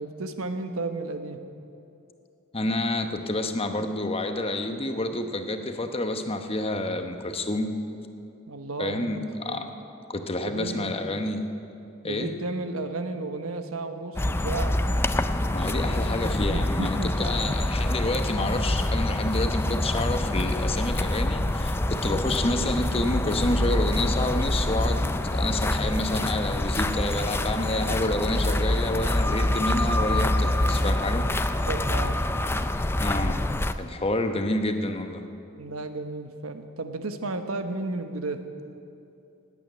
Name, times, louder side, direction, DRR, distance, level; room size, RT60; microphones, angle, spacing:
voice 1, 0.0-1.4 8.5-9.1 9.4-9.6 10.4-10.9 12.0-14.8 16.4-17.5 31.7-32.2 35.6-38.4, right 2 dB, 85° right, 7 dB, 1.2 m, -33 dB
voice 2, 2.5-7.7 8.8-9.7 10.1-11.4 12.0-12.3 15.5-31.2 33.0-33.4 33.8-35.2, left 2 dB, 25° left, 6 dB, 0.9 m, -29 dB
sound 1, 14.2-33.7, left 1 dB, 10° left, 0.4 m, -26 dB
18.0 x 8.7 x 9.3 m, 2.7 s
head